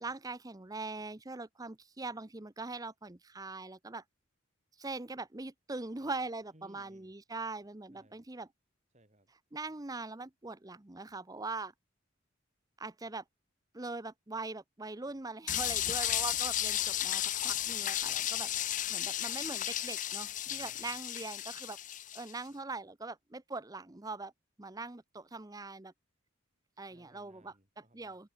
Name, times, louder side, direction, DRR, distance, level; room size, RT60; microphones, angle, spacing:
voice 1, 0.0-4.0 4.8-8.5 9.5-11.7 12.8-13.2 13.7-18.5 18.9-21.8 22.1-24.3 24.6-25.9 26.8-27.5 27.9-28.3, right 3 dB, 15° right, 0.7 m, -42 dB
voice 2, 6.5-7.1 7.9-8.3 8.9-9.3 18.0-18.8 20.4-21.0 26.9-28.2, right 1 dB, 35° right, 4.3 m, -64 dB
sound 1, 15.5-22.3, left 12 dB, 40° left, 0.6 m, -34 dB
head